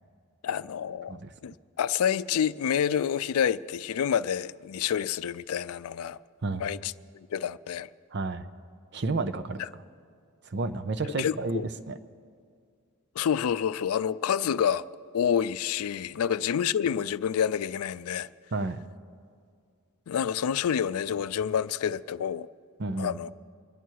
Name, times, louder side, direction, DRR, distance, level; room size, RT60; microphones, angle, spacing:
voice 1, 0.4-6.2 6.6-7.9 9.6-9.7 11.2-11.6 13.2-14.9 15.1-18.3 20.1-22.5 23.0-23.3, left 8 dB, 80° left, 0.4 m, -28 dB
voice 2, 8.1-8.5 8.9-9.6 10.4-11.9 18.5-18.8 22.8-23.2, right 3 dB, 50° right, 0.7 m, -31 dB
25.0 x 10.0 x 4.6 m
head